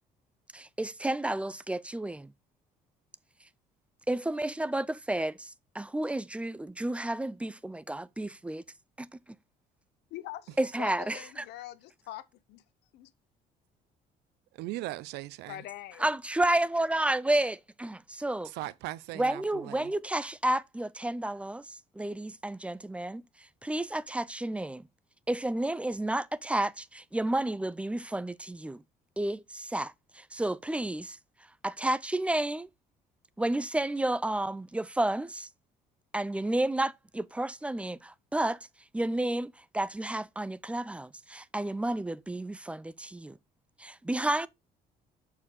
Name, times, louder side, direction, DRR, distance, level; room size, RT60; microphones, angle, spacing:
voice 1, 0.5-2.3 4.1-8.6 9.0-9.1 10.6-11.4 16.0-18.5 19.1-23.2 23.6-24.8 25.3-28.8 29.2-31.2 31.6-32.7 33.4-35.5 36.1-38.6 38.9-43.4 43.8-44.5, right 1 dB, 5° right, 0.3 m, -31 dB
voice 2, 10.1-12.6 12.9-13.1 15.5-16.1, left 14 dB, 80° left, 0.7 m, -43 dB
voice 3, 14.6-15.6 18.4-19.9, right 17 dB, 85° right, 0.5 m, -39 dB
6.5 x 4.5 x 3.6 m
cardioid pair, 110°, 17 cm